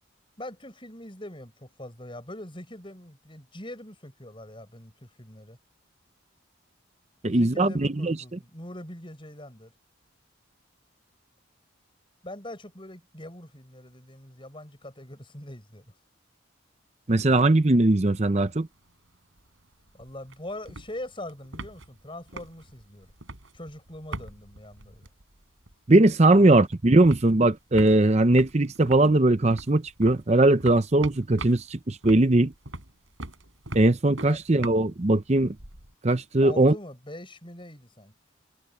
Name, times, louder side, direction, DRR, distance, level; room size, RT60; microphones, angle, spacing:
voice 1, 0.4-5.6 7.2-9.7 12.2-15.9 19.9-23.1 23.5-25.1 26.4-26.6 34.3-34.4 36.4-38.1, left 1 dB, 25° left, 7.3 m, -42 dB
voice 2, 7.2-8.2 17.1-18.7 25.9-32.5 33.7-35.5 36.0-36.7, right 2 dB, 35° right, 0.7 m, -20 dB
sound 1, 17.2-17.9 18.2-18.3 18.5-25.9 26.2-35.9, right 2 dB, 80° right, 4.8 m, -43 dB
head